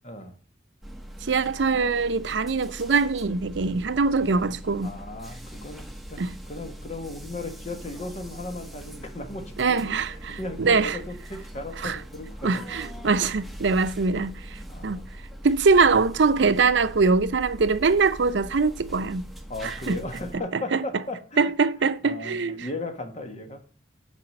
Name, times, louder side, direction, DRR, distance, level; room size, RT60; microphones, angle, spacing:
voice 1, 0.0-0.3 4.8-10.0 10.4-12.7 14.7-15.0 19.5-21.5 22.0-23.6, left 2 dB, 40° left, 1.4 m, -36 dB
sound 1, 0.8-20.4, equal, ahead, 1.1 m, -41 dB
voice 2, 1.2-4.9 6.2-6.3 9.6-11.0 11.8-12.0 12.4-15.0 15.4-19.2 19.6-20.0 20.5-20.8 21.4-22.7, right 4 dB, 75° right, 0.6 m, -23 dB
9.0 x 4.9 x 6.3 m
head